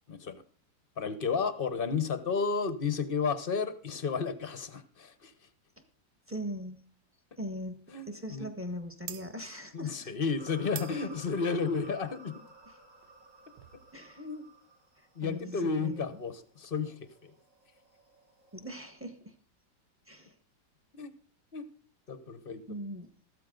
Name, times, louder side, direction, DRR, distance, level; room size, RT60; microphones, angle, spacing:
voice 1, 0.1-0.4 1.0-5.3 7.9-8.5 9.7-12.3 14.2-14.4 15.2-17.3 20.9-21.1 21.5-21.7 22.1-22.6, left 5 dB, 40° left, 11 dB, 0.9 m, -32 dB
voice 2, 6.3-6.8 7.4-10.1 12.6-12.8 13.9-14.3 15.0-16.2 18.5-19.3 20.1-20.3 22.7-23.1, equal, 10° right, 7 dB, 1.2 m, -41 dB
sound 1, 9.0-14.1, right 11 dB, 80° right, 1.4 m, -48 dB
sound 2, 10.4-18.9, right 2 dB, 45° right, 2.5 m, -55 dB
14.0 x 13.0 x 3.8 m, 0.40 s
omnidirectional pair, 1.9 m